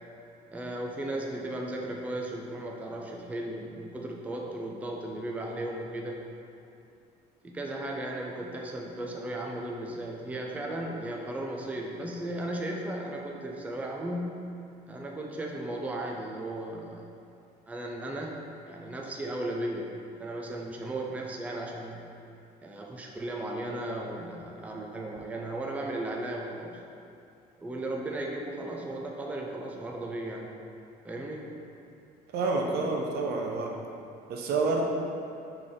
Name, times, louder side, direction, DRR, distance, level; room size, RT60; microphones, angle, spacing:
voice 1, 0.5-6.2 7.4-14.3 14.9-17.1 17.7-18.4 18.7-19.9 20.2-22.1 22.6-26.8 27.6-30.6 31.0-31.6, right 1 dB, 10° right, 0 dB, 0.4 m, -36 dB
voice 2, 32.3-33.7 34.3-34.9, right 3 dB, 70° right, 0 dB, 0.6 m, -28 dB
3.6 x 3.4 x 3.8 m, 2.6 s
cardioid pair, 110°, 17 cm